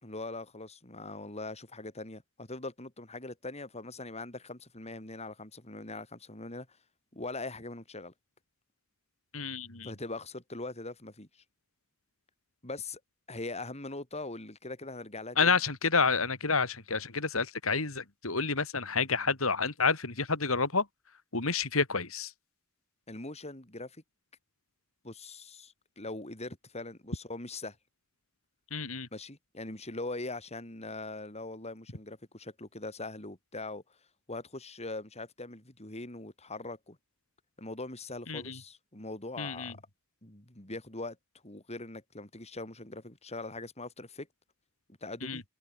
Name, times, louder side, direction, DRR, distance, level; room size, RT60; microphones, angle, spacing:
voice 1, 0.0-6.7 7.1-8.1 9.8-11.3 12.6-13.0 13.3-15.6 23.1-24.0 25.0-27.8 29.1-33.8 34.3-37.0 37.6-39.8 40.2-41.2 41.4-44.3 45.0-45.4, left 2 dB, 30° left, 5.3 m, -41 dB
voice 2, 9.3-9.9 15.4-20.9 21.3-22.3 28.7-29.1 38.3-38.6 39.4-39.7 45.2-45.4, left 4 dB, 80° left, 3.5 m, -29 dB
head